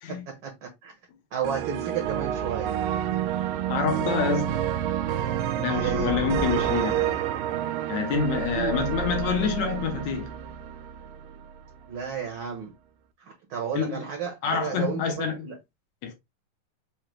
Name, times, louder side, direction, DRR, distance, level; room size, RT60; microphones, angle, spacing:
voice 1, 0.1-0.9 1.3-2.8 5.7-6.2 8.5-8.8 11.9-12.7 13.2-15.6, right 7 dB, 55° right, 1.5 m, -33 dB
sound 1, 1.4-11.5, right 10 dB, 85° right, 2.4 m, -29 dB
voice 2, 3.7-4.7 5.6-7.2 7.9-10.3 13.7-14.0 14.4-15.5 16.0-16.1, left 6 dB, 70° left, 2.0 m, -27 dB
5.8 x 2.8 x 3.2 m
omnidirectional pair, 3.8 m